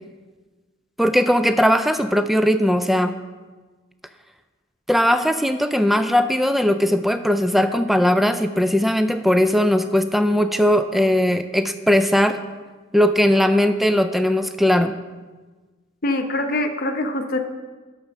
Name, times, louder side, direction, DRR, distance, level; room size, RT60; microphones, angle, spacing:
voice 1, 1.0-3.1 4.9-12.4 12.9-14.9, equal, ahead, 9 dB, 0.3 m, -19 dB
voice 2, 16.0-17.4, left 1 dB, 50° left, 5 dB, 0.9 m, -24 dB
9.0 x 6.1 x 6.5 m, 1.3 s
head